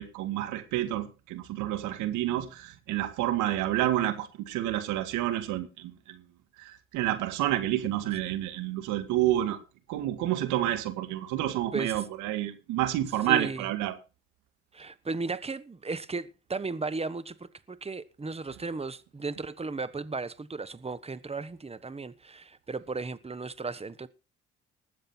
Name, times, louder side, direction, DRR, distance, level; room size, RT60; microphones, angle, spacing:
voice 1, 0.0-6.2 6.6-9.6 9.9-13.9, right 13 dB, 85° right, 2.1 m, -29 dB
voice 2, 11.7-12.0 13.3-13.6 14.7-24.1, right 3 dB, 20° right, 1.2 m, -35 dB
20.0 x 7.8 x 4.4 m
supercardioid pair, 65°, 30 cm